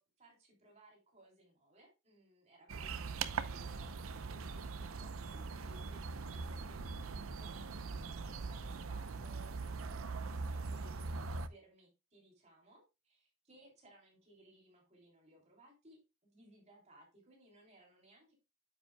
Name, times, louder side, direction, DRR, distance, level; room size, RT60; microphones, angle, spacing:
voice 1, 0.0-6.3 6.6-7.6 8.2-18.3, right 1 dB, 35° right, 0 dB, 3.2 m, -63 dB
sound 1, 2.7-11.5, right 4 dB, 90° right, 0.6 m, -41 dB
9.4 x 8.1 x 2.2 m, 0.26 s
head